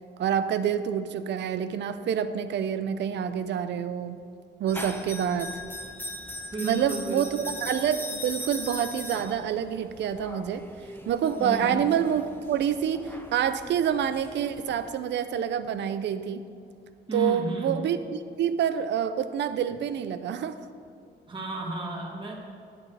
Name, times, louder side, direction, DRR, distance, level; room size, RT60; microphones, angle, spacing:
voice 1, 0.2-4.2 4.6-5.6 6.6-10.6 11.1-16.4 17.1-20.5, right 8 dB, 75° right, 11 dB, 0.6 m, -27 dB
sound 1, 4.7-14.9, left 1 dB, 10° left, 0.9 m, -40 dB
voice 2, 6.5-7.5 11.4-11.8 17.1-17.8 21.3-22.3, right 2 dB, 25° right, -1 dB, 1.8 m, -33 dB
11.0 x 9.5 x 3.4 m, 2.5 s
cardioid pair, 120°, 18 cm